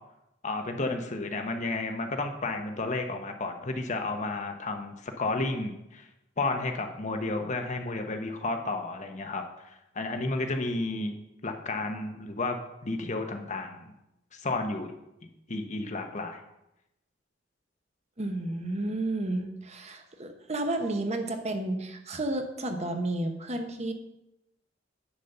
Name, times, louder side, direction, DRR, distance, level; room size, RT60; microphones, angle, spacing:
voice 1, 0.4-6.1 6.4-11.2 11.4-13.8 14.3-14.9 15.5-16.4, left 2 dB, 40° left, 5 dB, 1.0 m, -32 dB
voice 2, 18.2-23.9, right 2 dB, 35° right, 5 dB, 1.0 m, -31 dB
9.9 x 4.2 x 6.7 m, 0.87 s
head